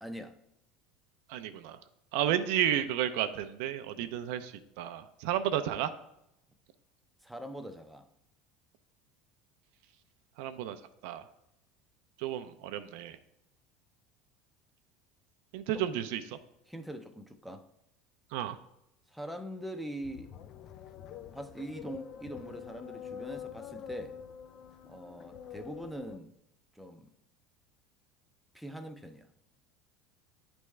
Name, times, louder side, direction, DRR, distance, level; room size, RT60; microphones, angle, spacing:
voice 1, 0.0-0.3 7.2-8.1 15.7-16.0 16.7-17.7 19.1-20.3 21.3-24.2 24.9-26.3 26.8-27.1 28.5-29.3, right 1 dB, ahead, 0.5 m, -43 dB
voice 2, 1.3-1.8 2.1-4.5 4.8-5.9 10.4-10.8 11.0-11.2 12.2-13.2 15.5-16.2 18.3-18.6, right 11 dB, 75° right, 0.5 m, -32 dB
sound 1, 20.0-26.2, left 8 dB, 45° left, 0.3 m, -45 dB
9.7 x 3.5 x 3.2 m
supercardioid pair, 120°, 0 cm